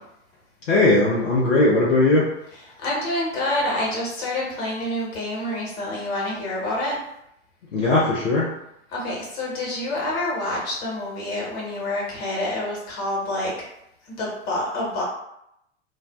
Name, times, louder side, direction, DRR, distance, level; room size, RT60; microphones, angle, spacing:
voice 1, 0.7-2.3 7.7-8.5, left 2 dB, 80° left, -6 dB, 0.7 m, -18 dB
voice 2, 2.8-7.0 8.9-13.5 14.1-15.0, left 1 dB, 55° left, -4 dB, 1.3 m, -27 dB
2.5 x 2.0 x 2.4 m, 0.79 s
figure-of-eight pair, 95°, 37 cm